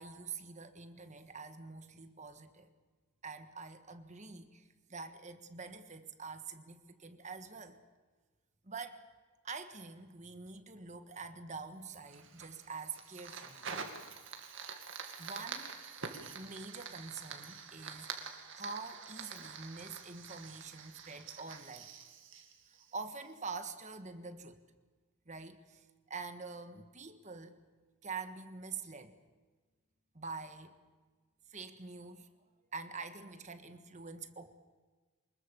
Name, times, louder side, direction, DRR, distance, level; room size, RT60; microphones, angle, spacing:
voice 1, 0.0-2.7 3.2-7.8 8.6-9.0 9.4-13.7 15.2-15.8 16.3-21.9 22.9-24.6 25.3-25.8 26.1-27.6 28.0-29.2 30.1-30.7 31.5-32.3 32.7-34.5, right 4 dB, 30° right, 8 dB, 1.5 m, -46 dB
Fire, 11.9-23.3, right 5 dB, 55° right, 2.3 m, -46 dB
24.5 x 21.0 x 7.1 m, 1.4 s
head